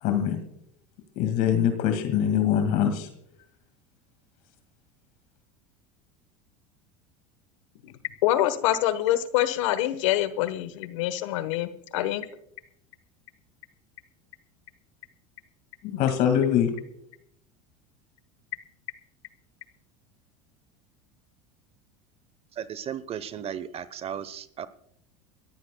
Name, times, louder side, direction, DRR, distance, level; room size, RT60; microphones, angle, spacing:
voice 1, 0.0-0.4 1.2-3.1 15.8-16.7, left 9 dB, 60° left, 7 dB, 2.0 m, -23 dB
voice 2, 8.2-12.2, left 13 dB, 80° left, 13 dB, 1.2 m, -25 dB
voice 3, 22.5-24.7, right 9 dB, 40° right, 17 dB, 0.8 m, -35 dB
28.5 x 14.5 x 2.2 m, 0.73 s
supercardioid pair, 100°, 16 cm